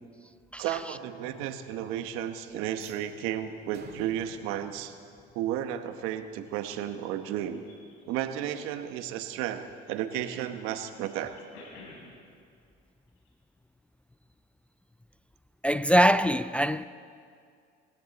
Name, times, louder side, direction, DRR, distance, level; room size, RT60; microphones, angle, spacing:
voice 1, 0.6-5.0 5.3-7.6 8.1-11.3, right 10 dB, 80° right, 1.2 m, -33 dB
sound 1, 2.7-5.8, right 5 dB, 50° right, 2.0 m, -53 dB
sound 2, 5.9-6.0 6.5-7.1 7.5-8.0 9.1-10.3 10.6-12.4 13.1-13.3 13.6-13.7, left 3 dB, 85° left, 4.3 m, -52 dB
voice 2, 15.6-16.9, equal, 5° left, 0.3 m, -22 dB
21.0 x 16.5 x 4.1 m
supercardioid pair, 100°, 21 cm